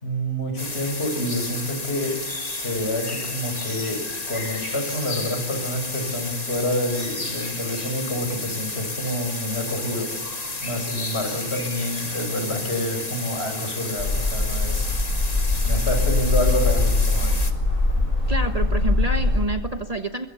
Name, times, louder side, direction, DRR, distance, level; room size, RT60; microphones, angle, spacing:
voice 1, 0.0-2.2 2.5-4.0 4.3-14.9 15.6-17.5, left 1 dB, 50° left, 6 dB, 6.1 m, -28 dB
sound 1, 0.6-17.5, left 2 dB, 30° left, 1.9 m, -32 dB
sound 2, 14.0-19.4, left 2 dB, 80° left, 8.3 m, -22 dB
voice 2, 18.3-20.3, right 2 dB, 30° right, 6 dB, 1.3 m, -27 dB
24.5 x 23.5 x 7.1 m, 1.2 s
omnidirectional pair, 1.4 m